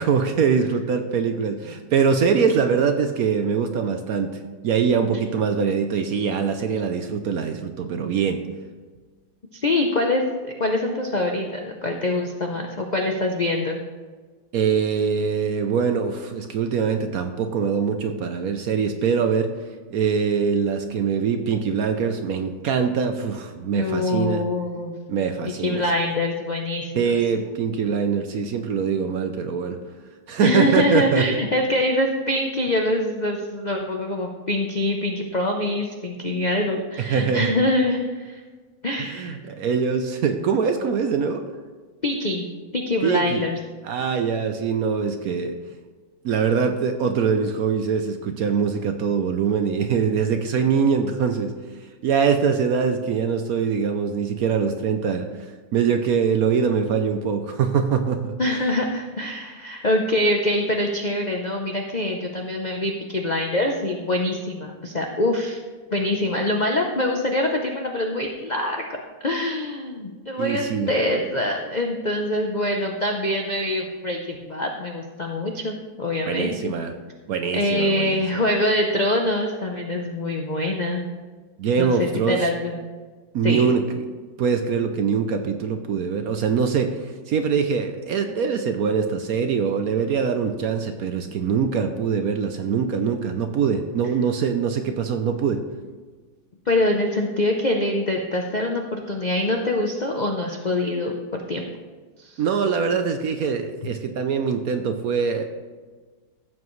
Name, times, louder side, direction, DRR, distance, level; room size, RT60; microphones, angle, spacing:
voice 1, 0.0-8.4 14.5-19.5 19.9-24.4 25.1-25.8 26.9-29.8 30.3-31.3 37.0-37.5 39.0-41.4 43.0-43.5 43.8-45.5 46.2-51.5 52.0-58.3 70.4-70.9 76.3-76.9 77.3-78.4 81.6-82.5 83.3-84.1 84.4-95.6 102.4-105.4, right 6 dB, 65° right, 7 dB, 0.9 m, -23 dB
voice 2, 9.5-13.8 23.7-24.9 25.6-27.0 30.4-38.4 38.8-39.3 42.0-42.5 42.7-43.6 58.4-65.6 65.9-68.8 69.2-76.7 77.5-81.0 81.8-82.8 83.4-83.7 96.7-101.6 102.2-102.4, left 1 dB, 80° left, 2 dB, 0.4 m, -24 dB
15.0 x 7.3 x 3.2 m, 1.4 s
omnidirectional pair, 2.0 m